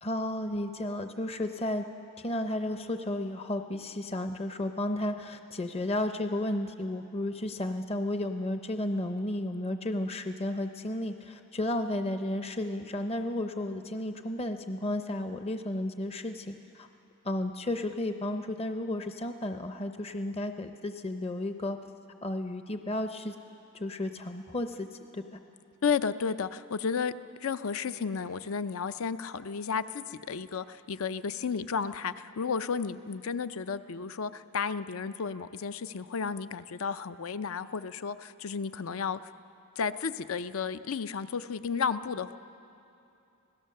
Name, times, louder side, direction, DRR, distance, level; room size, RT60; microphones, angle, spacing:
voice 1, 0.0-1.8 2.2-16.9 17.2-21.8 22.2-23.4 23.7-24.9 25.1-25.4, left 1 dB, 30° left, 8 dB, 0.6 m, -33 dB
voice 2, 25.8-27.1 27.4-39.3 39.8-42.4, left 6 dB, 75° left, 13 dB, 0.6 m, -33 dB
26.0 x 17.0 x 6.6 m, 2.7 s
head